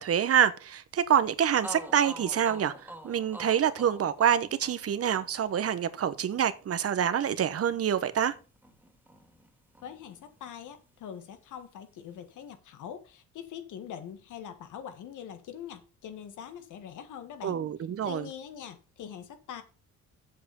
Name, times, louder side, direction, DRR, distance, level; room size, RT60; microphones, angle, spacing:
voice 1, 0.0-8.3 17.4-18.3, right 9 dB, 50° right, 0.9 m, -26 dB
sound 1, 1.2-1.3 1.6-9.5 9.7-10.9, right 1 dB, 5° right, 2.2 m, -48 dB
voice 2, 9.8-17.6 18.0-19.6, left 9 dB, 80° left, 1.6 m, -43 dB
7.6 x 6.8 x 5.2 m
cardioid pair, 90°, 30 cm